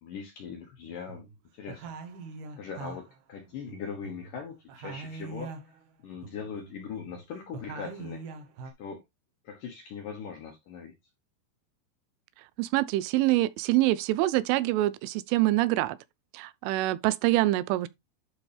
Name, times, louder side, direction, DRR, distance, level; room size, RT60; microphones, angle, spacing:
voice 1, 0.0-1.3 1.5-1.9 2.6-8.2 8.8-9.0 9.4-10.9, left 6 dB, 70° left, 2.1 m, -40 dB
sound 1, 0.8-1.4 1.7-4.4 4.7-5.8 6.1-8.7, right 4 dB, 65° right, 2.1 m, -43 dB
voice 2, 12.6-16.0 16.3-17.9, right 17 dB, 85° right, 3.1 m, -25 dB
11.5 x 5.0 x 3.4 m
omnidirectional pair, 5.5 m